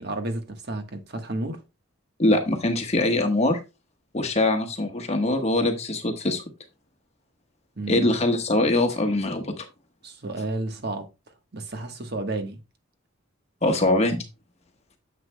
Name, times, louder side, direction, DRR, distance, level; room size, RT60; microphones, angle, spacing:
voice 1, 0.0-1.6 7.8-8.1 10.0-11.1 11.5-12.6, right 2 dB, 50° right, 1.3 m, -31 dB
voice 2, 2.2-3.6 4.1-6.4 7.9-9.7 13.6-14.2, left 2 dB, 30° left, 1.2 m, -23 dB
9.8 x 7.4 x 2.2 m
head